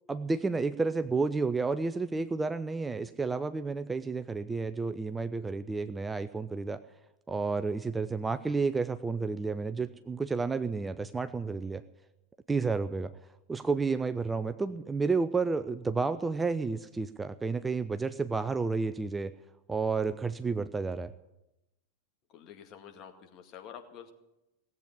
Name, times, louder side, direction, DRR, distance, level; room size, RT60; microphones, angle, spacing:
voice 1, 0.1-6.8 7.3-11.8 12.5-13.1 13.5-19.3 19.7-21.1, right 4 dB, 10° right, 11 dB, 0.5 m, -31 dB
voice 2, 22.3-24.1, left 8 dB, 35° left, 5 dB, 2.0 m, -48 dB
17.5 x 8.2 x 9.8 m, 0.93 s
figure-of-eight pair, 90°, 0 cm